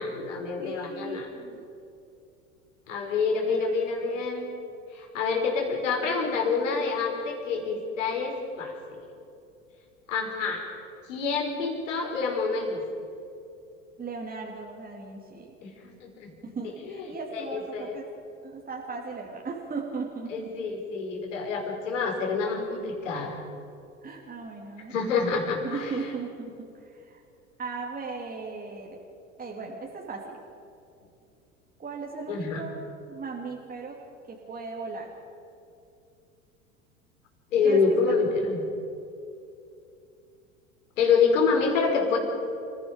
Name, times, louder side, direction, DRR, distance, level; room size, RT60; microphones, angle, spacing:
voice 1, 0.0-1.3 2.9-4.4 4.9-9.0 10.1-10.6 11.1-12.8 15.6-16.3 16.9-17.0 17.3-18.0 20.3-23.4 24.9-25.9 32.3-32.6 37.5-38.6 41.0-42.2, left 5 dB, 70° left, 1 dB, 5.1 m, -27 dB
voice 2, 0.6-1.7 3.5-4.3 14.0-15.6 16.4-18.1 18.4-20.5 24.0-24.9 25.3-25.4 25.6-27.2 27.6-29.0 29.4-30.4 31.8-32.8 33.1-34.0 34.3-35.1 37.6-37.8 38.1-38.2, right 4 dB, 20° right, -1 dB, 3.0 m, -37 dB
29.5 x 16.5 x 5.3 m, 2.6 s
figure-of-eight pair, 80°, 39 cm